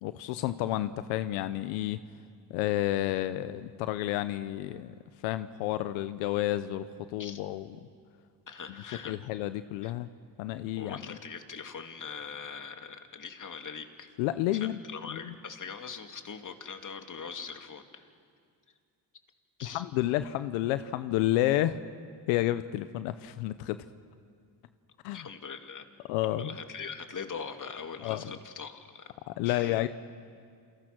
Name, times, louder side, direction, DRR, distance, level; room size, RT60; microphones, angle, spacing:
voice 1, 0.0-2.0 2.5-4.9 5.2-6.9 7.1-7.7 9.1-10.1 10.4-11.0 14.2-14.8 15.1-15.3 19.6-21.8 22.3-23.8 25.0-25.3 26.1-26.6 28.0-28.2 29.3-29.9, left 14 dB, 90° left, 12 dB, 0.9 m, -30 dB
voice 2, 8.5-9.3 9.8-9.9 10.8-14.1 14.5-18.0 19.6-19.8 25.1-25.8 26.3-29.1 29.4-29.8, left 6 dB, 40° left, 5 dB, 2.9 m, -42 dB
28.5 x 28.0 x 6.2 m, 2.2 s
supercardioid pair, 65°, 47 cm